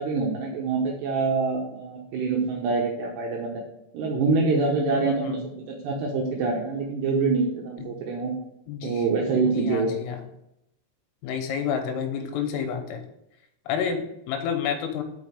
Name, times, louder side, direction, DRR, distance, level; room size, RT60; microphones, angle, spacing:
voice 1, 0.0-3.6 3.9-8.3 8.8-9.9, right 4 dB, 75° right, 0 dB, 2.7 m, -25 dB
voice 2, 4.8-5.4 7.8-8.0 8.7-9.0 9.4-10.2 11.2-13.0 13.7-15.0, left 7 dB, 80° left, 5 dB, 3.5 m, -30 dB
6.3 x 6.1 x 5.0 m, 0.81 s
omnidirectional pair, 5.8 m